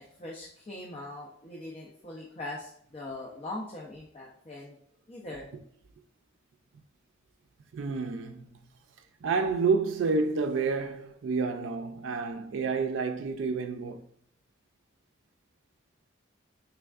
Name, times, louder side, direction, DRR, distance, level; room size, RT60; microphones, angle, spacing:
voice 1, 0.0-4.8 5.1-5.5, left 2 dB, 30° left, 0.4 m, -41 dB
voice 2, 7.7-8.5 9.2-14.0, right 4 dB, 85° right, 0.4 m, -29 dB
3.4 x 3.4 x 2.3 m
head